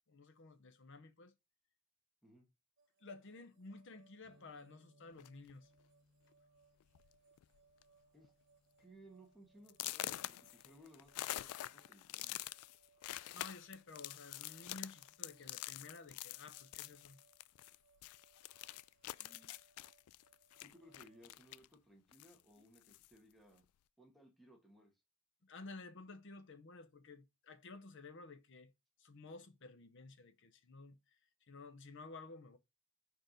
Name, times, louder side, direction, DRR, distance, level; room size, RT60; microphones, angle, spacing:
voice 1, 0.1-1.3 3.0-5.7 13.3-17.2 25.4-28.7 29.0-32.6, left 3 dB, 55° left, 0.8 m, -53 dB
sound 1, 2.8-21.3, right 4 dB, 55° right, 1.2 m, -73 dB
sound 2, 4.2-11.8, left 1 dB, 90° right, 1.0 m, -74 dB
sound 3, 5.2-5.5 6.3-6.4 6.8-7.1 7.4-7.8 8.2-8.3 8.8-8.9 9.7-17.8 18.0-21.7 22.1-23.1, left 15 dB, 80° left, 0.3 m, -46 dB
voice 2, 8.8-12.4 19.2-19.5 20.6-23.6 24.0-24.9, right 1 dB, ahead, 1.5 m, -62 dB
4.7 x 4.5 x 5.1 m
head